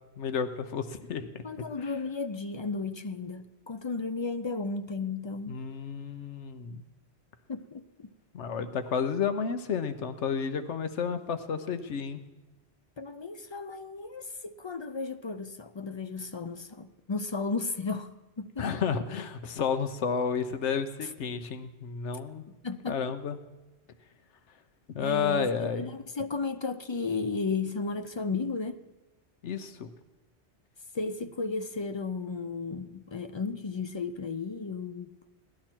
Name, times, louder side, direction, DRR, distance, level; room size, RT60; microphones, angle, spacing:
voice 1, 0.2-1.4 1.8-1.9 5.5-6.8 8.3-12.3 18.6-22.4 22.9-23.4 24.9-25.9 29.4-29.9, left 6 dB, 90° left, 10 dB, 1.1 m, -31 dB
voice 2, 1.4-5.6 7.5-8.1 13.0-18.7 21.0-21.1 22.5-23.0 25.0-28.8 30.9-35.1, left 4 dB, 45° left, 9 dB, 0.3 m, -34 dB
17.5 x 12.0 x 4.5 m, 1.1 s
omnidirectional pair, 1.2 m